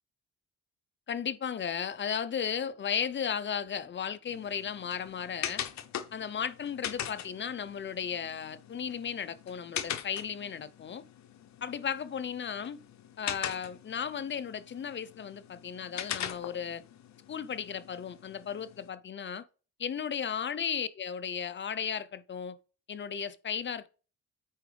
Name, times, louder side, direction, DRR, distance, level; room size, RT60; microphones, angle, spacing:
voice 1, 1.1-5.6 6.1-11.0 11.6-12.8 13.2-16.8 17.3-19.4 19.8-22.6 22.9-23.9, left 7 dB, 40° left, 0.7 m, -35 dB
sound 1, 4.3-18.9, left 10 dB, 65° left, 0.9 m, -42 dB
8.8 x 4.8 x 3.4 m
cardioid pair, 90°, 30 cm